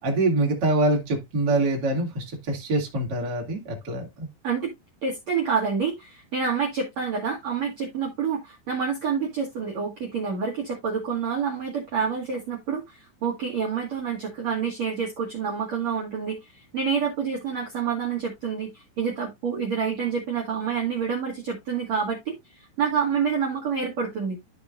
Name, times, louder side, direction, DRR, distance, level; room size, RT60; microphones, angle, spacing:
voice 1, 0.0-4.3, right 2 dB, 35° right, 1.7 m, -25 dB
voice 2, 5.0-24.4, right 6 dB, 55° right, 2.0 m, -28 dB
13.5 x 5.1 x 2.5 m
omnidirectional pair, 5.6 m